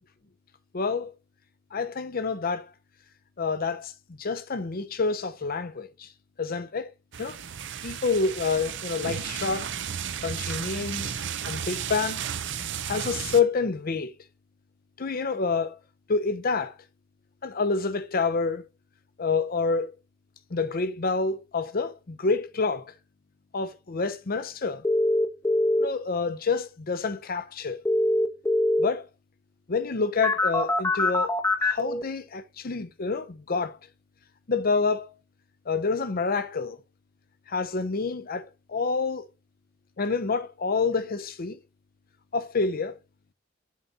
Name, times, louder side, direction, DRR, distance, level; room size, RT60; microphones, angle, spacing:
voice 1, 0.7-1.1 1.7-2.7 3.4-3.9 4.2-6.1 6.4-6.9 7.2-7.4 7.8-9.7 10.2-12.2 12.8-14.1 15.0-15.8 16.1-16.8 17.4-18.6 19.2-19.9 20.5-22.9 23.5-24.9 25.8-27.8 28.8-29.1 29.7-31.3 31.6-33.8 34.5-35.1 35.7-36.8 37.5-39.3 40.0-41.6 42.3-43.0, left 4 dB, 50° left, 0.7 m, -28 dB
sound 1, 7.1-13.4, right 8 dB, 65° right, 0.7 m, -33 dB
sound 2, 24.8-25.9 27.8-28.9 30.2-32.0, left 1 dB, 15° left, 0.8 m, -23 dB
7.3 x 4.2 x 4.1 m
head